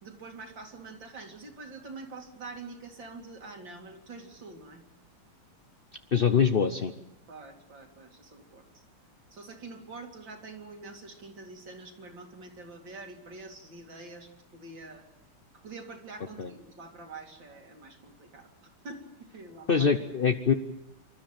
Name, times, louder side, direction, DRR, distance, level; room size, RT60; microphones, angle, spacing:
voice 1, 0.0-4.8 7.3-8.8 9.3-15.0 15.6-19.0 19.3-19.9, right 3 dB, 60° right, 3 dB, 3.1 m, -45 dB
voice 2, 6.1-6.9 16.4-16.5 19.7-20.5, left 6 dB, 70° left, 7 dB, 0.5 m, -24 dB
26.5 x 13.0 x 9.0 m, 0.88 s
omnidirectional pair, 2.3 m